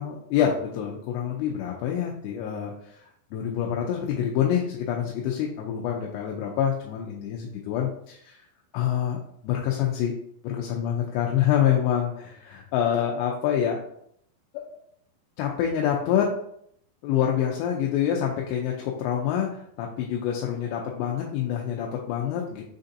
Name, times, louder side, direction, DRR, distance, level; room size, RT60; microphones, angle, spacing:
voice 1, 0.0-8.4 8.7-9.2 9.4-10.1 10.4-13.8 14.5-14.7 15.4-16.3 17.0-22.6, left 9 dB, 90° left, -1 dB, 2.7 m, -26 dB
6.3 x 2.6 x 2.6 m, 0.69 s
omnidirectional pair, 4.8 m